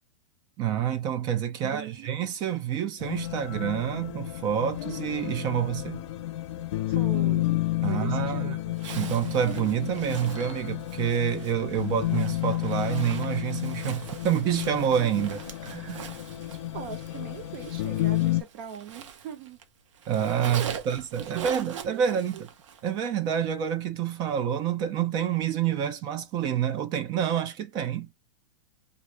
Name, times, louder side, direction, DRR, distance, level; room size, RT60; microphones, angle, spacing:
voice 1, 0.6-6.0 7.8-16.1 20.1-22.5 22.8-28.1, right 9 dB, 25° right, 0.4 m, -28 dB
voice 2, 1.6-2.1 6.9-7.6 7.9-8.7 16.7-19.6 20.7-22.2, right 9 dB, 50° right, 0.9 m, -41 dB
sound 1, 3.0-18.4, left 16 dB, 65° left, 0.5 m, -31 dB
Zipper (clothing), 8.7-19.7 19.9-22.9, right 7 dB, 75° right, 0.7 m, -43 dB
3.2 x 2.4 x 2.5 m
supercardioid pair, 150°, 16 cm